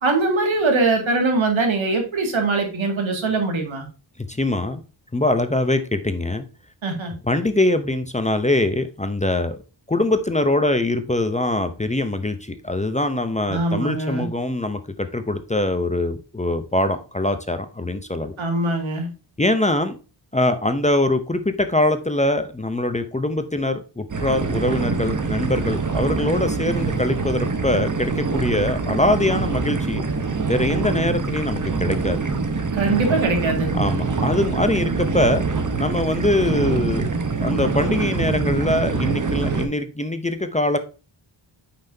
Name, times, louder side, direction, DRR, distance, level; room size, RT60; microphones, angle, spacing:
voice 1, 0.0-3.9 6.8-7.1 13.5-14.3 18.4-19.1 32.7-33.7, right 3 dB, 80° right, 2.2 m, -22 dB
voice 2, 4.3-4.8 5.1-6.4 7.2-9.6 9.9-18.4 19.4-20.0 20.3-30.0 30.5-32.2 33.7-37.1 37.4-40.8, left 1 dB, 15° left, 0.6 m, -23 dB
sound 1, 24.1-39.7, right 4 dB, 40° right, 1.1 m, -24 dB
8.6 x 5.8 x 2.7 m
wide cardioid pair, 110°, 47 cm